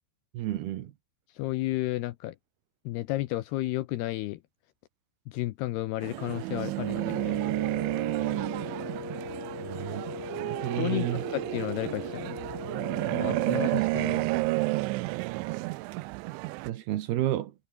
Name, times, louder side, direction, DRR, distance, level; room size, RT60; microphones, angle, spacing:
voice 1, 0.3-0.9 9.6-10.0 10.3-11.2 16.7-17.5, right 13 dB, 70° right, 2.8 m, -31 dB
voice 2, 1.4-2.4 2.9-4.4 5.3-7.5 10.8-12.4 13.1-14.3, left 17 dB, 80° left, 2.5 m, -32 dB
sound 1, 6.0-16.7, right 22 dB, 90° right, 3.0 m, -31 dB
Wind instrument woodwind instrument, 7.1-13.9, left 5 dB, 35° left, 1.8 m, -40 dB
omnidirectional pair, 5.4 m